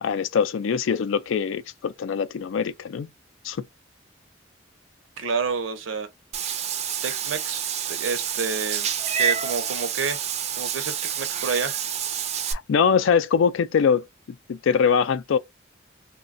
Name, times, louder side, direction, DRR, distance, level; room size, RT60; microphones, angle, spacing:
voice 1, 0.0-3.1 3.4-3.6 12.5-14.1 14.5-15.4, left 6 dB, 85° left, 0.4 m, -22 dB
voice 2, 5.2-6.1 7.0-8.9 9.2-10.2 10.6-11.7, right 5 dB, 85° right, 0.7 m, -29 dB
Meow / Water / Bathtub (filling or washing), 6.3-12.5, right 8 dB, 35° right, 0.3 m, -28 dB
3.0 x 2.2 x 2.5 m
head